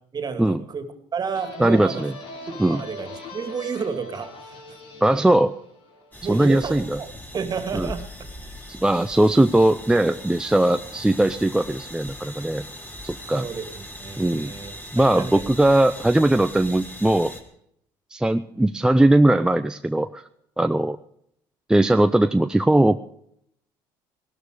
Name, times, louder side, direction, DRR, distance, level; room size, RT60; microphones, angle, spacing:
voice 1, 0.1-2.0 2.5-4.6 5.1-5.2 6.2-7.1 7.3-8.1 13.3-15.5, right 6 dB, 40° right, 8 dB, 2.2 m, -31 dB
sound 1, 1.3-6.8, left 1 dB, 65° left, 3.9 m, -41 dB
voice 2, 1.6-2.1 2.6-2.8 5.0-5.6 6.3-7.0 7.7-7.9 8.7-12.7 13.0-13.5 14.2-14.5 14.9-17.3 18.1-20.2 20.6-21.0 21.7-23.0, right 1 dB, 5° right, 8 dB, 0.6 m, -19 dB
sound 2, 6.1-17.4, left 1 dB, 15° left, 3.5 m, -40 dB
18.0 x 12.5 x 4.9 m, 0.71 s
supercardioid pair, 70°, 11 cm